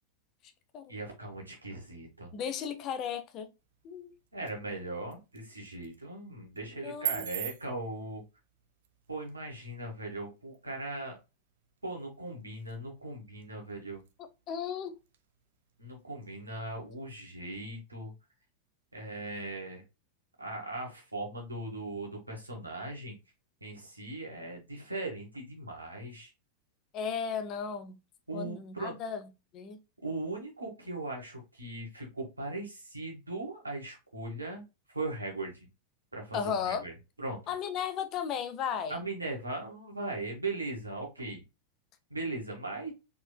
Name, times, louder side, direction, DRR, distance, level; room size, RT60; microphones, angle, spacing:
voice 1, 0.9-2.3 4.3-8.2 9.1-11.2 11.8-14.0 15.8-18.1 18.9-19.8 20.4-23.2 23.6-26.3 28.3-28.9 30.0-34.6 34.9-35.7 36.1-37.4 38.9-41.4 42.1-42.9, right 2 dB, 80° right, 1.6 m, -39 dB
voice 2, 2.3-3.5 3.8-4.1 6.8-7.3 14.5-14.9 26.9-27.9 28.3-29.3 29.5-29.8 36.3-36.8 37.5-39.0, left 7 dB, 35° left, 0.7 m, -35 dB
sound 1, 3.6-17.6, right 11 dB, 60° right, 0.6 m, -46 dB
4.2 x 3.6 x 2.2 m
figure-of-eight pair, 90°, 0 cm